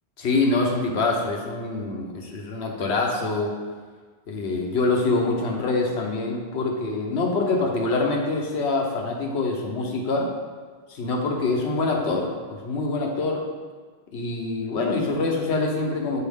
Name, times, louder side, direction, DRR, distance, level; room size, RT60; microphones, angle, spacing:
voice 1, 0.2-3.5 4.3-10.3 10.9-13.4 14.1-16.2, left 3 dB, 90° left, 1 dB, 1.1 m, -25 dB
6.8 x 4.3 x 3.6 m, 1.5 s
omnidirectional pair, 1.1 m